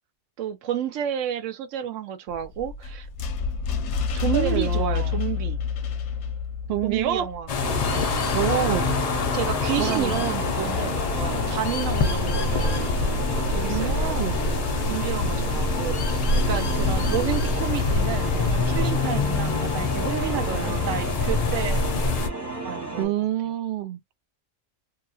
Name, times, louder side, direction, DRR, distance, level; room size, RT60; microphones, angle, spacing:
voice 1, 0.4-3.1 4.1-5.6 6.8-7.5 7.9-8.1 9.3-13.0 13.5-14.2 14.9-21.8 22.6-23.1, right 10 dB, 85° right, 1.0 m, -31 dB
sound 1, 2.3-7.4, left 6 dB, 75° left, 0.9 m, -28 dB
voice 2, 4.3-5.2 6.7-7.3 8.3-8.9 9.8-10.2 13.7-14.5 20.3-20.9 23.0-24.0, right 10 dB, 65° right, 0.7 m, -27 dB
sound 2, 7.5-22.3, left 4 dB, 55° left, 0.4 m, -25 dB
sound 3, 7.6-23.1, right 2 dB, 15° right, 1.2 m, -33 dB
2.8 x 2.3 x 2.5 m
omnidirectional pair, 1.3 m